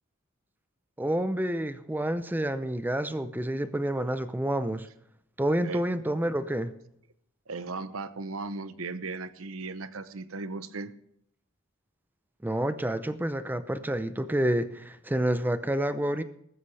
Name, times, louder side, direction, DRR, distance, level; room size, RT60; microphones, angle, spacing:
voice 1, 1.0-4.9 5.4-6.7 12.4-16.2, right 1 dB, 10° right, 0.6 m, -28 dB
voice 2, 7.5-10.9, right 3 dB, 85° right, 0.9 m, -36 dB
15.5 x 13.5 x 3.3 m
head